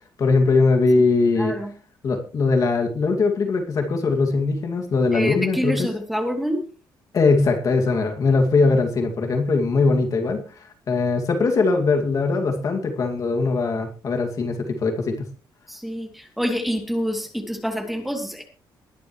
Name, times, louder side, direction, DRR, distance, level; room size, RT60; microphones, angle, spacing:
voice 1, 0.2-1.5 2.0-5.9 7.1-15.2, left 3 dB, 45° left, 4 dB, 2.3 m, -21 dB
voice 2, 5.1-6.6 15.8-16.1 16.4-18.4, equal, ahead, 3 dB, 2.7 m, -26 dB
21.0 x 11.0 x 3.2 m, 0.35 s
cardioid pair, 155°, 8 cm